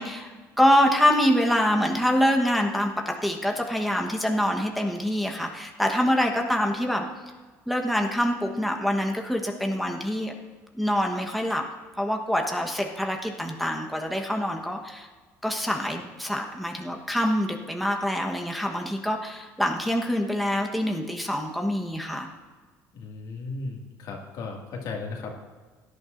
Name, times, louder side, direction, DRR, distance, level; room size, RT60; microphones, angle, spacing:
voice 1, 0.0-7.1 7.7-10.3 10.8-11.6 12.0-15.1 15.4-22.3, equal, ahead, 1 dB, 1.2 m, -25 dB
voice 2, 22.9-25.3, left 3 dB, 65° left, 0 dB, 2.1 m, -35 dB
17.0 x 10.5 x 2.6 m, 1.4 s
cardioid pair, 100°, 7 cm